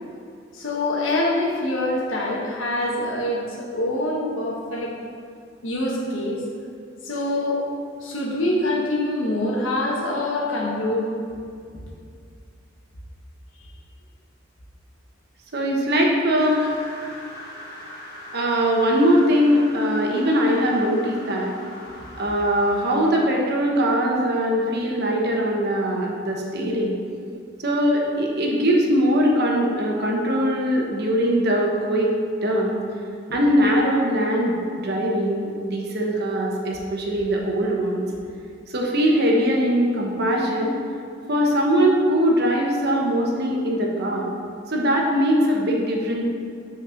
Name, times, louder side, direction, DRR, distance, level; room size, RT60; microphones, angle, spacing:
voice 1, 0.5-4.9 5.6-6.4 7.0-7.6 8.0-11.1, left 1 dB, 85° left, -2 dB, 1.4 m, -25 dB
voice 2, 15.5-16.7 18.3-21.5 22.2-26.9 27.6-32.1 32.4-32.8 33.3-38.0 38.7-40.7 41.3-44.3 44.7-46.2, equal, 60° right, -1 dB, 1.1 m, -21 dB
sound 1, 16.4-23.3, left 1 dB, 60° left, 1.8 m, -41 dB
6.0 x 4.5 x 5.8 m, 2.3 s
head